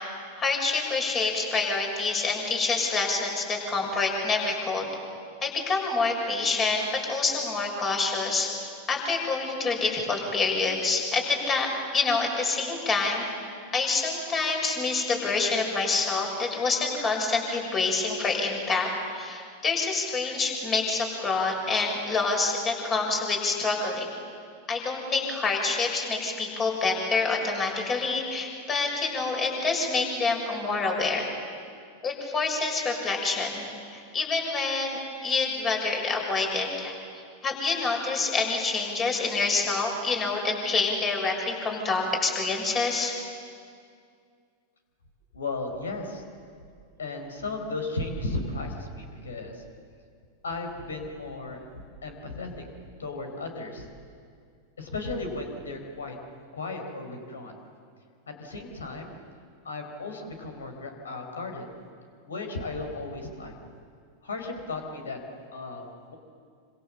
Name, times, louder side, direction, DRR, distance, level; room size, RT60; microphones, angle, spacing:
voice 1, 0.4-4.9 5.4-13.2 13.7-24.1 24.7-31.3 32.0-43.1, left 3 dB, 25° left, 1 dB, 6.6 m, -27 dB
voice 2, 45.3-46.2 47.0-49.6 50.4-51.6 52.0-52.5 53.0-53.9 54.8-56.2 56.5-57.6 58.3-59.2 59.6-61.7 62.3-63.5 64.2-65.2 65.5-65.9, left 3 dB, 70° left, 4 dB, 4.3 m, -35 dB
27.5 x 26.5 x 7.4 m, 2.2 s
figure-of-eight pair, 90°, 0 cm